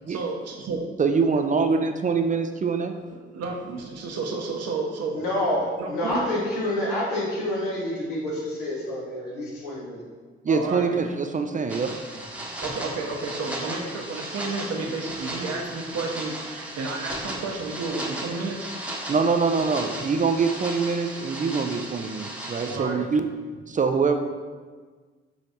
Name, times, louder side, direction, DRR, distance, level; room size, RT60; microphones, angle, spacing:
voice 1, 0.1-0.8 3.1-5.2 5.8-6.3 10.5-10.9 12.4-18.7 21.8-21.9 22.7-23.0 23.7-23.8, right 3 dB, 60° right, 1 dB, 0.8 m, -31 dB
voice 2, 1.0-2.9 10.4-12.0 19.1-23.3 23.7-24.2, right 5 dB, 25° right, 6 dB, 0.4 m, -24 dB
voice 3, 5.1-10.0, left 1 dB, 80° left, -4 dB, 1.1 m, -28 dB
sound 1, 11.7-22.8, right 1 dB, 5° right, 0.9 m, -36 dB
5.9 x 3.1 x 2.7 m, 1.5 s
hypercardioid pair, 45°, 29 cm